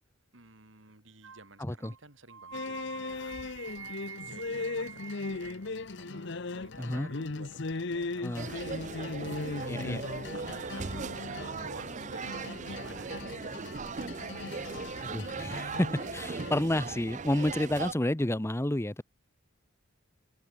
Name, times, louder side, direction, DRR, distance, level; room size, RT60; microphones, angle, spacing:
voice 1, 0.3-3.4 4.1-5.6 5.9-9.8 10.3-13.8, right 2 dB, 70° right, 5.9 m, -52 dB
sound 1, 1.2-1.5 1.8-2.0 2.3-5.7, right 7 dB, 85° right, 1.9 m, -46 dB
voice 2, 1.6-1.9 6.8-7.1 8.2-8.5 9.7-10.0 15.0-19.0, left 1 dB, 15° left, 0.9 m, -30 dB
sound 2, 2.5-16.5, left 3 dB, 60° left, 1.0 m, -38 dB
sound 3, 8.3-17.9, right 4 dB, 35° right, 0.6 m, -38 dB
open air
head